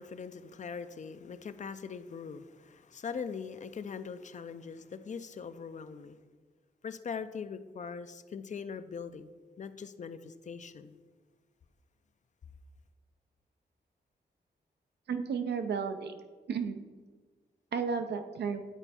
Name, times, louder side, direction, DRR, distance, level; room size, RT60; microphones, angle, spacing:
voice 1, 0.0-6.2 6.8-9.3 9.6-11.0, left 6 dB, 45° left, 12 dB, 0.4 m, -41 dB
voice 2, 15.1-16.1 16.5-16.9 17.7-18.6, right 6 dB, 85° right, 8 dB, 0.6 m, -33 dB
8.9 x 4.5 x 4.2 m, 1.4 s
wide cardioid pair, 100°, 17 cm